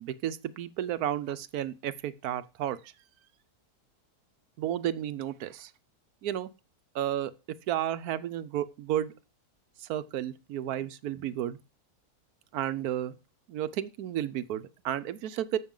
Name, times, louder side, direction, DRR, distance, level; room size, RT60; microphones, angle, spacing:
voice 1, 0.0-2.9 4.6-5.7 6.2-6.5 6.9-7.3 7.7-9.1 9.8-11.6 12.5-13.2 13.5-15.6, right 11 dB, 75° right, 1.1 m, -32 dB
14.5 x 6.4 x 3.8 m
omnidirectional pair, 1.7 m